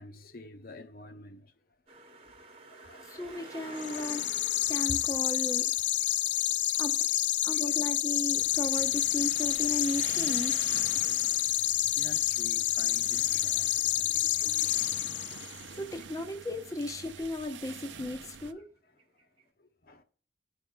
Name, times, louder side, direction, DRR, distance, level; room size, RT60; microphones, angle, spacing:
voice 1, 0.0-1.5 1.9-2.3 2.7-3.4 6.1-6.2 6.7-6.8 11.9-15.1 18.5-18.7 19.6-20.0, left 2 dB, 50° left, 0.8 m, -50 dB
sound 1, 1.9-9.7 10.0-11.8 12.2-15.0 15.3-15.4 15.7-16.7 16.9-17.5 17.8-19.5, right 3 dB, 30° right, 1.1 m, -52 dB
voice 2, 3.0-4.3 4.7-5.7 6.8-7.0 7.4-10.8 15.8-18.7, left 1 dB, 20° left, 0.6 m, -35 dB
sound 2, 3.8-15.6, left 14 dB, 75° left, 0.4 m, -28 dB
sound 3, 8.4-18.5, right 6 dB, 85° right, 0.6 m, -47 dB
13.0 x 4.7 x 3.7 m
head